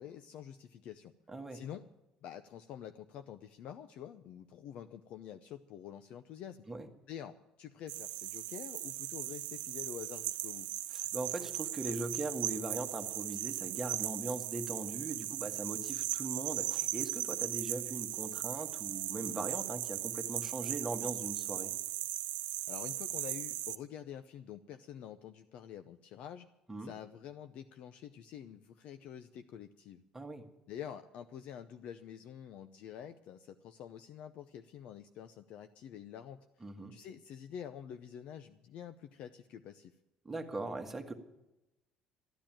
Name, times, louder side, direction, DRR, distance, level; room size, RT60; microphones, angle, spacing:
voice 1, 0.0-1.1 1.5-1.9 2.2-6.6 7.1-10.7 22.7-26.5 26.8-30.0 30.7-36.5 36.9-39.9, left 9 dB, 60° left, 9 dB, 0.7 m, -47 dB
voice 2, 1.3-1.6 6.7-6.9 10.9-21.7 26.7-26.9 30.1-30.5 36.6-36.9 40.2-41.1, right 2 dB, 10° right, 3 dB, 1.6 m, -40 dB
sound 1, 7.9-23.8, right 15 dB, 85° right, 0.7 m, -38 dB
13.5 x 10.0 x 8.9 m, 0.95 s
cardioid pair, 140°, 2 cm